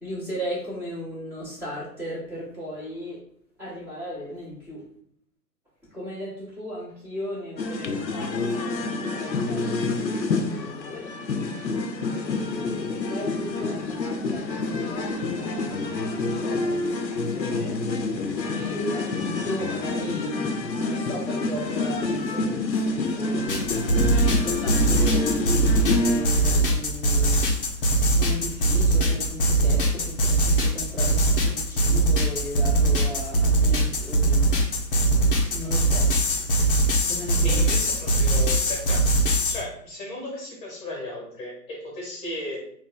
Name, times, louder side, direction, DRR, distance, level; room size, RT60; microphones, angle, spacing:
voice 1, 0.0-3.2 3.6-4.9 5.8-11.1 12.2-17.8 18.5-23.5 23.9-27.8 28.2-34.4 35.5-36.1 37.1-37.6, equal, 5° right, -9 dB, 1.0 m, -36 dB
sound 1, 7.6-26.6, left 3 dB, 85° left, 0.6 m, -28 dB
sound 2, 23.5-39.6, right 2 dB, 35° left, 0.7 m, -22 dB
voice 2, 37.4-39.1 39.5-42.7, left 1 dB, 10° left, -3 dB, 1.3 m, -35 dB
3.5 x 2.5 x 3.8 m, 0.65 s
figure-of-eight pair, 125°, 50 cm